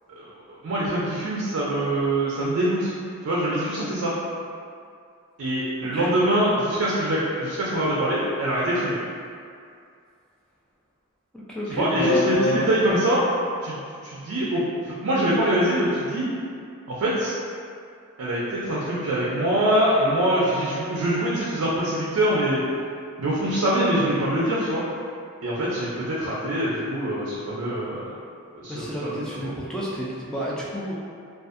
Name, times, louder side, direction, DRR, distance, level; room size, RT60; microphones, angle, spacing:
voice 1, 0.1-2.9 3.2-4.1 5.4-9.0 11.8-13.3 13.6-13.8 14.0-14.6 15.0-16.3 16.9-17.3 18.2-22.6 23.2-24.8 25.4-28.1 28.5-28.9, right 1 dB, 75° right, -7 dB, 0.4 m, -24 dB
voice 2, 11.3-12.7 28.7-30.9, left 1 dB, 5° left, -7 dB, 0.3 m, -28 dB
2.6 x 2.3 x 2.4 m, 2.3 s
head